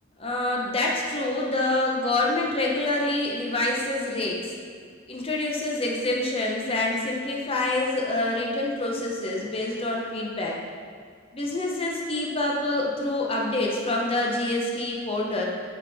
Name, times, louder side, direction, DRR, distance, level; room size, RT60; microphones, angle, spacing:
voice 1, 0.2-4.4 5.1-10.6 11.3-15.5, left 2 dB, 30° left, -2 dB, 1.1 m, -26 dB
8.9 x 6.3 x 3.6 m, 2.1 s
head